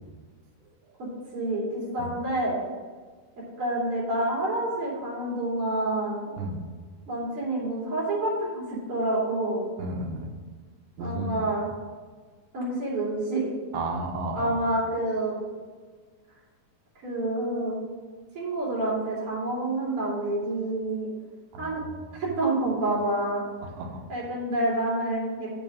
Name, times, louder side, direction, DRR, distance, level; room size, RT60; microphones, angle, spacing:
voice 1, 1.0-2.6 3.6-6.3 7.1-9.7 11.0-11.6 12.5-13.5 14.3-15.4 17.0-17.8 18.4-21.1 21.6-21.8 22.2-23.4 24.1-25.5, right 1 dB, 40° right, -6 dB, 3.6 m, -28 dB
voice 2, 9.8-10.3 11.0-11.5 13.7-14.6 21.5-21.9 23.8-24.0, right 2 dB, 85° right, 2 dB, 2.8 m, -33 dB
7.1 x 6.0 x 6.1 m, 1.5 s
omnidirectional pair, 4.0 m